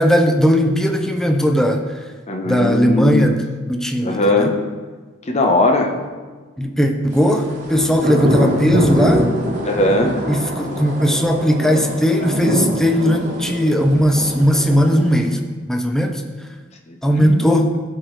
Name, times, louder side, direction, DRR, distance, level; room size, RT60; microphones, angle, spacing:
voice 1, 0.0-1.8 2.5-3.4 3.7-4.5 6.6-9.3 10.3-16.2 17.0-17.7, equal, 5° left, 4 dB, 0.5 m, -17 dB
voice 2, 2.3-3.3 4.0-4.6 5.3-5.9 9.6-10.2 16.9-17.4, left 2 dB, 35° left, 4 dB, 0.8 m, -19 dB
sound 1, 7.2-15.2, equal, 40° right, 1.4 m, -23 dB
13.5 x 4.7 x 3.2 m, 1.4 s
head